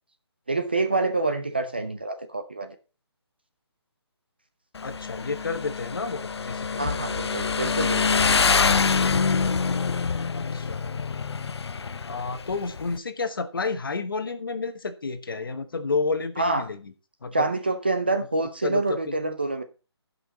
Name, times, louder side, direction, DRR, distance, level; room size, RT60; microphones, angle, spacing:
voice 1, 0.5-2.8 6.8-8.2 16.4-16.7 17.3-19.6, right 2 dB, 20° right, 0.4 m, -27 dB
Motorcycle, 4.8-13.0, left 5 dB, 70° left, 0.6 m, -25 dB
voice 2, 4.8-6.9 10.3-10.8 12.1-16.9 17.2-17.5 18.6-19.1, left 4 dB, 50° left, 1.2 m, -30 dB
15.5 x 5.7 x 4.0 m
hypercardioid pair, 180°, 14 cm